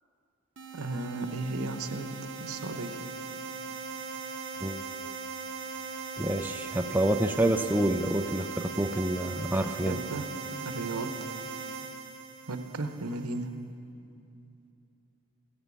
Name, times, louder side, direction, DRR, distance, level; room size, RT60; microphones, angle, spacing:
sound 1, 0.6-13.3, right 5 dB, 55° right, 0.7 m, -39 dB
voice 1, 0.7-2.1 2.4-3.0 9.8-10.2 10.6-11.1 12.5-13.5, right 2 dB, 80° right, 8 dB, 1.0 m, -35 dB
voice 2, 6.2-10.0, right 1 dB, 10° right, 6 dB, 0.4 m, -28 dB
16.5 x 11.0 x 7.0 m, 2.6 s
head